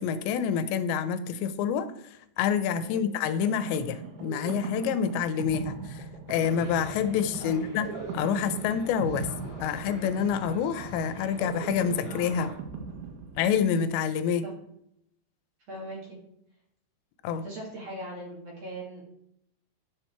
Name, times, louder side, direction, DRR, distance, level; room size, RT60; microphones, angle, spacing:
voice 1, 0.0-1.9 2.4-7.9 8.1-9.3 9.6-12.5 13.4-14.4 17.2-17.4, left 7 dB, 85° left, 11 dB, 2.9 m, -27 dB
sound 1, 3.3-13.8, right 5 dB, 85° right, 3.5 m, -39 dB
sound 2, 6.3-12.5, left 3 dB, 40° left, 4.2 m, -44 dB
voice 2, 15.7-16.2 17.4-19.0, right 1 dB, 45° right, -3 dB, 2.8 m, -40 dB
10.0 x 6.2 x 4.5 m, 0.75 s
omnidirectional pair, 5.1 m